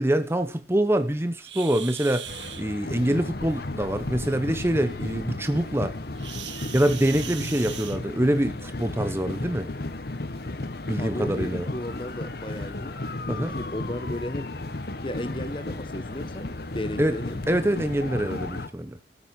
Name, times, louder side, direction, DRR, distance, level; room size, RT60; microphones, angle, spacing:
voice 1, 0.0-2.3 2.6-5.9 6.7-9.7 10.9-11.7 13.3-13.5 17.0-17.1 17.5-19.0, right 1 dB, 15° right, 0.8 m, -25 dB
sound 1, 1.4-2.6 6.2-8.4 9.6-9.8 10.4-10.5 11.1-11.2 12.0-12.1 12.5-12.7, right 10 dB, 80° right, 1.7 m, -39 dB
sound 2, 2.2-18.7, left 2 dB, 55° left, 1.1 m, -34 dB
voice 2, 11.0-13.0 13.5-14.5 15.0-17.4, left 1 dB, 25° left, 1.3 m, -34 dB
14.0 x 7.4 x 7.3 m
head